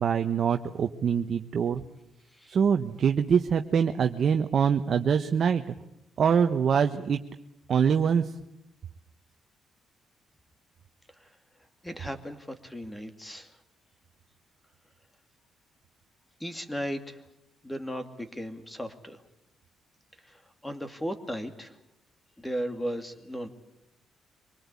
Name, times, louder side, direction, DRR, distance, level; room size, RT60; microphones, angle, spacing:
voice 1, 0.0-1.8 2.5-5.7 6.2-7.2 7.7-8.3, right 7 dB, 55° right, 6 dB, 1.0 m, -24 dB
voice 2, 11.8-13.5 16.4-17.2 17.6-19.2 20.3-21.7 22.4-23.5, equal, 10° left, 8 dB, 2.5 m, -36 dB
24.0 x 19.5 x 8.4 m, 0.88 s
cardioid pair, 90°, 0 cm